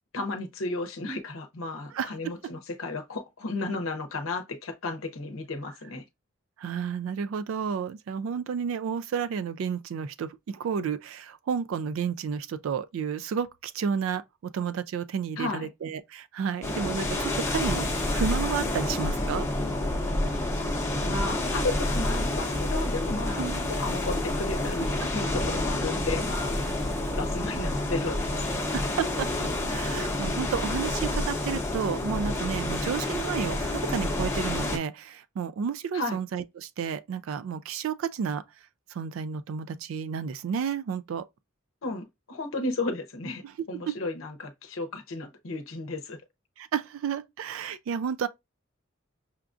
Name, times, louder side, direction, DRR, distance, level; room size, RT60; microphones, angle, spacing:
voice 1, 0.1-6.0 15.4-15.7 21.0-26.6 27.1-28.6 35.9-36.2 41.8-43.4 43.7-46.2, left 2 dB, 70° left, 0.7 m, -33 dB
voice 2, 6.6-14.2 14.5-19.5 23.3-23.6 26.6-26.7 28.7-29.3 29.7-38.4 38.9-41.3 43.4-43.9 46.6-48.3, right 7 dB, 70° right, 0.3 m, -31 dB
sound 1, 16.6-34.8, left 1 dB, 15° left, 0.8 m, -29 dB
5.7 x 2.4 x 2.4 m
head